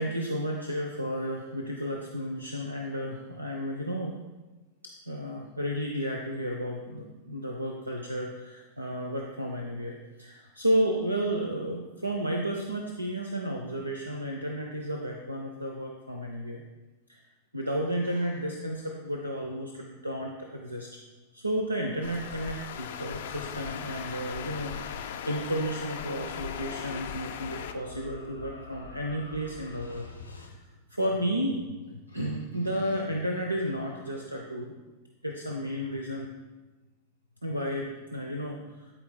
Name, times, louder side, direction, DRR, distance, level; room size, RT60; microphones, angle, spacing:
voice 1, 0.0-4.1 5.1-16.6 17.1-17.2 17.5-20.9 21.3-30.1 30.4-30.6 30.9-34.7 35.2-36.3 37.4-38.9, equal, 85° right, 1 dB, 0.5 m, -32 dB
sound 1, 22.0-27.7, left 8 dB, 60° left, 0.4 m, -38 dB
sound 2, 23.8-30.5, left 3 dB, 80° left, 0.8 m, -49 dB
11.5 x 4.4 x 2.2 m, 1.2 s
figure-of-eight pair, 90°, 0 cm